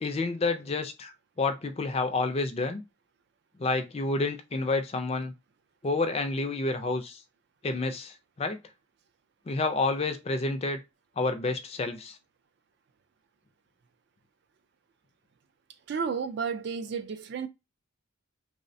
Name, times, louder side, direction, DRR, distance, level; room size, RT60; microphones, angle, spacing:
voice 1, 0.0-2.8 3.6-5.3 5.8-7.2 7.6-8.6 9.5-10.8 11.2-12.2, left 3 dB, 30° left, 0.3 m, -29 dB
voice 2, 15.9-17.5, right 6 dB, 55° right, 0.3 m, -32 dB
3.1 x 2.1 x 2.6 m
head